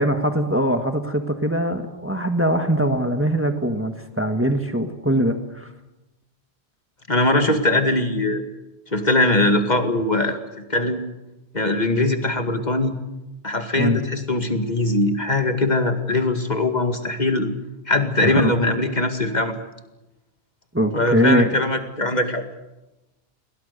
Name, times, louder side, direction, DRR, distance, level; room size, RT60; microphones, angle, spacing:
voice 1, 0.0-5.7 13.8-14.0 18.2-18.5 20.7-21.5, equal, 10° right, 6 dB, 1.6 m, -22 dB
voice 2, 7.1-8.4 8.9-10.4 10.7-11.0 11.5-13.0 13.4-17.5 17.9-19.5 20.9-22.4, left 2 dB, 40° left, 6 dB, 2.3 m, -21 dB
29.5 x 22.5 x 6.8 m, 1.0 s
omnidirectional pair, 1.1 m